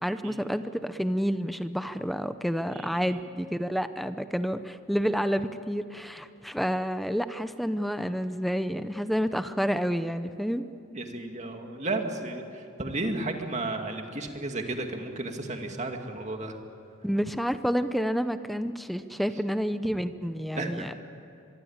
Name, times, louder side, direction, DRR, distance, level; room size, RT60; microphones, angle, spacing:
voice 1, 0.0-10.6 17.0-20.9, equal, ahead, 10 dB, 0.7 m, -29 dB
voice 2, 2.7-3.2 10.9-16.6 20.6-20.9, right 2 dB, 35° right, 4 dB, 2.3 m, -33 dB
25.0 x 23.0 x 8.9 m, 2.7 s
head